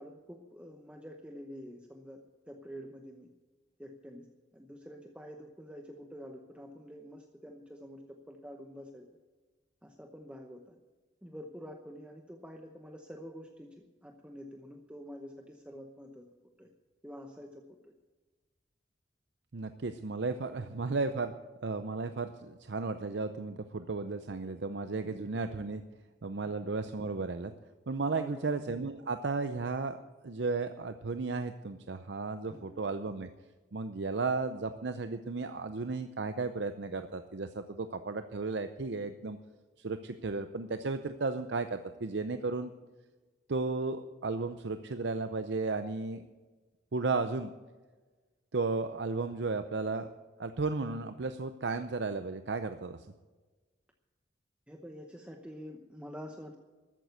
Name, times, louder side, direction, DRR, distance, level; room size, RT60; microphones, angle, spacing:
voice 1, 0.0-3.3 3.8-9.1 9.8-10.7 11.2-16.2 16.6-16.7 17.0-17.9 20.6-20.7 25.0-25.3 26.4-26.7 28.2-28.5 32.5-32.8 54.7-56.6, equal, 5° right, 3 dB, 0.9 m, -48 dB
voice 2, 19.5-21.3 21.6-25.8 26.2-27.5 27.9-30.0 30.2-33.3 33.7-39.4 39.8-42.7 43.5-46.3 46.9-47.5 48.5-50.1 50.4-53.1, right 3 dB, 75° right, 9 dB, 0.6 m, -34 dB
13.5 x 9.3 x 8.1 m, 1.3 s
head